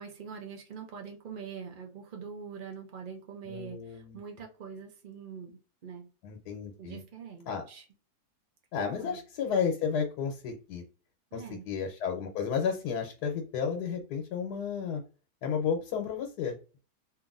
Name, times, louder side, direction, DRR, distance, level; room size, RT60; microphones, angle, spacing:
voice 1, 0.0-6.0 6.8-7.8 9.0-9.2 11.3-11.7, right 6 dB, 80° right, 2 dB, 0.4 m, -44 dB
voice 2, 3.4-4.2 6.2-7.0 7.5-7.6 8.7-10.8 11.3-15.0 15.4-16.6, left 6 dB, 80° left, 2 dB, 1.2 m, -32 dB
2.8 x 2.5 x 2.4 m, 0.34 s
omnidirectional pair, 1.7 m